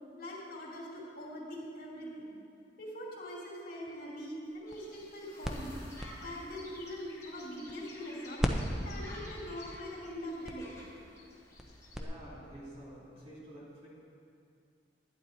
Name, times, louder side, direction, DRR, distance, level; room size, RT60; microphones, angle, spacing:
voice 1, 0.2-2.3 2.8-5.7 6.2-8.4 8.8-10.7, equal, 55° left, -5 dB, 2.5 m, -42 dB
sound 1, 4.4-8.1 8.4-12.0, equal, 5° right, 0.6 m, -39 dB
sound 2, 4.7-12.0, left 1 dB, 15° left, 1.8 m, -52 dB
voice 2, 12.0-13.9, right 1 dB, 35° right, -8 dB, 3.0 m, -49 dB
11.0 x 10.0 x 4.2 m, 2.5 s
head